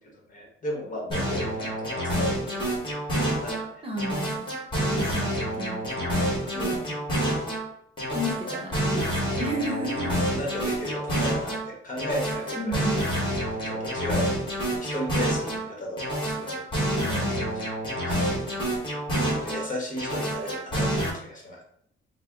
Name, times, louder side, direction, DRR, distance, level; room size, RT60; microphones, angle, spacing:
voice 1, 0.1-2.7 3.0-3.1 3.4-3.8 6.5-6.8 8.2-8.5 9.8-12.8 13.6-14.3 14.8-16.6 16.9-17.3 17.5-18.2 19.3-21.6, left 1 dB, 40° left, -1 dB, 1.1 m, -36 dB
sound 1, 1.1-3.6 4.0-7.6 8.0-11.6 12.0-15.6 16.0-19.6 20.0-21.1, equal, 25° left, 1.5 m, -28 dB
voice 2, 3.8-4.4 4.9-6.2 6.6-6.9 8.1-10.1 12.6-13.0 17.0-17.6, equal, 25° right, 0 dB, 0.7 m, -33 dB
4.1 x 2.1 x 3.6 m, 0.72 s
cardioid pair, 125°, 21 cm